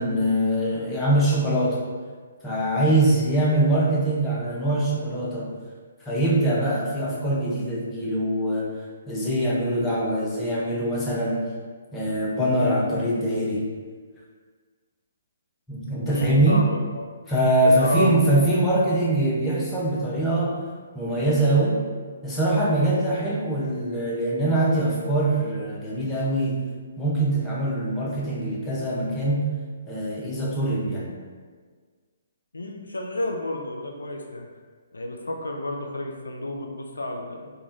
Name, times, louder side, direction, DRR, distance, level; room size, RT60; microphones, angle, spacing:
voice 1, 0.0-1.8 2.4-5.5 6.1-8.7 9.1-11.5 11.9-13.7 15.7-16.6 17.3-20.6 20.9-21.8 22.2-26.6 27.0-29.5 29.9-31.1, right 1 dB, 10° left, -6 dB, 0.6 m, -23 dB
voice 2, 16.1-17.0 17.8-18.1 32.5-34.5 34.9-37.5, left 1 dB, 80° left, 2 dB, 0.3 m, -31 dB
3.2 x 2.1 x 2.5 m, 1.6 s
figure-of-eight pair, 135°, 0 cm